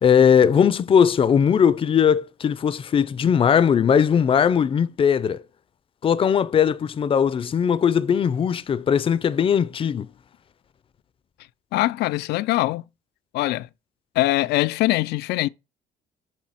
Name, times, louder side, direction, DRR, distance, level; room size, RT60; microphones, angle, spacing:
voice 1, 0.0-5.4 6.0-10.1, left 7 dB, 30° left, 0.5 m, -19 dB
voice 2, 11.7-12.8 13.3-13.7 14.2-15.5, left 17 dB, 80° left, 0.5 m, -22 dB
7.5 x 2.9 x 5.6 m
cardioid pair, 110°, 17 cm